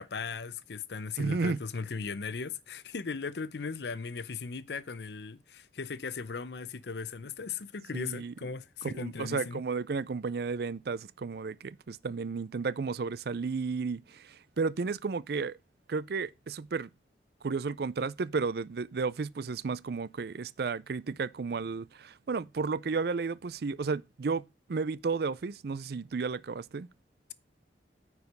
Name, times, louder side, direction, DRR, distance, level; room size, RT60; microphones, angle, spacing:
voice 1, 0.0-9.6, left 5 dB, 65° left, 0.6 m, -38 dB
voice 2, 1.2-1.6 7.9-8.3 8.8-15.6 15.9-16.9 17.4-24.4 24.7-26.9, right 4 dB, 60° right, 0.4 m, -33 dB
9.6 x 4.9 x 5.2 m
head